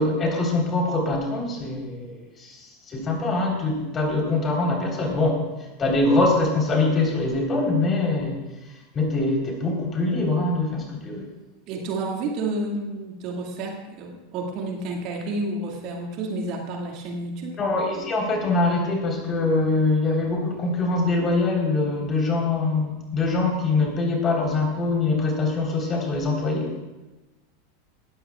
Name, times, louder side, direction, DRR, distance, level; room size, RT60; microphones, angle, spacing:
voice 1, 0.0-5.5 5.8-8.4 8.9-11.3 17.6-26.8, left 2 dB, 30° left, 0 dB, 4.0 m, -23 dB
voice 2, 11.7-17.6, right 2 dB, 45° right, 1 dB, 2.1 m, -30 dB
19.0 x 13.5 x 2.4 m, 1.1 s
figure-of-eight pair, 85°, 0 cm